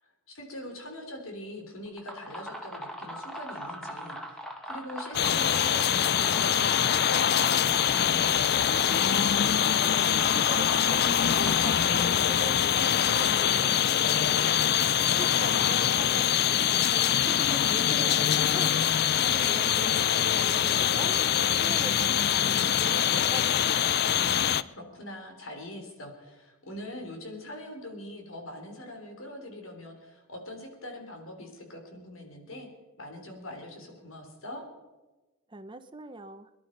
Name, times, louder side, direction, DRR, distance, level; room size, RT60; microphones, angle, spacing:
voice 1, 0.0-8.4 15.0-15.8 24.2-32.7 33.0-34.6, left 1 dB, 80° left, 3 dB, 3.6 m, -43 dB
sound 1, 1.9-12.2, equal, 5° left, 1.8 m, -41 dB
sound 2, 5.1-24.6, left 9 dB, 50° left, 0.4 m, -24 dB
voice 2, 9.4-14.4 15.2-21.2 21.6-23.5 35.5-36.5, right 2 dB, 25° right, 10 dB, 0.7 m, -42 dB
22.5 x 11.5 x 5.2 m, 1.2 s
head